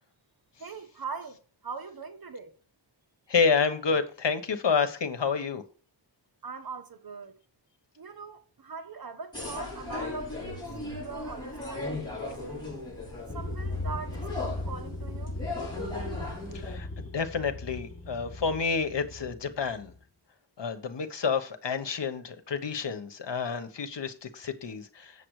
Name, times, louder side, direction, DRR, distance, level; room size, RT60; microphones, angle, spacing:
voice 1, 0.6-2.5 6.4-7.4 8.0-10.7 11.0-12.6 13.3-15.4, right 5 dB, 50° right, 1.3 m, -41 dB
voice 2, 3.3-5.6 16.5-19.9 20.6-25.1, left 5 dB, 70° left, 1.3 m, -29 dB
sound 1, 9.3-16.8, left 2 dB, 10° left, 5.0 m, -37 dB
sound 2, 13.3-20.0, left 1 dB, 30° left, 5.0 m, -37 dB
7.9 x 7.2 x 4.9 m
wide cardioid pair, 90°, 44 cm